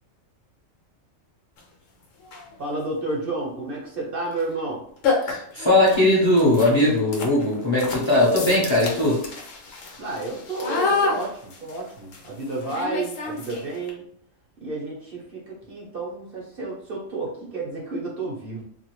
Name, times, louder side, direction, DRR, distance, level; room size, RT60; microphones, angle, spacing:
sound 1, 1.6-1.7 2.2-2.6 4.3-4.5 4.7-4.8 5.0-13.9, left 4 dB, 80° left, 1.0 m, -30 dB
voice 1, 2.6-4.8 10.0-14.0 14.6-18.6, right 2 dB, 50° right, -4 dB, 0.9 m, -31 dB
voice 2, 5.2-9.2, left 1 dB, 25° left, -6 dB, 0.8 m, -19 dB
sound 2, 8.4-9.5 9.7-9.8 10.2-10.3, left 4 dB, 60° left, 0.8 m, -34 dB
2.6 x 2.4 x 2.9 m, 0.66 s
omnidirectional pair, 1.3 m